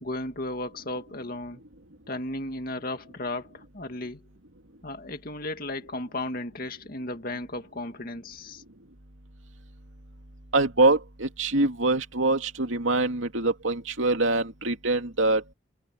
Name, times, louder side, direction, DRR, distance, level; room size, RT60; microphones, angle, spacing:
voice 1, 0.0-1.6 2.1-4.2 4.8-8.6, left 2 dB, 50° left, 2.1 m, -35 dB
voice 2, 10.5-15.4, right 2 dB, 90° right, 2.6 m, -24 dB
head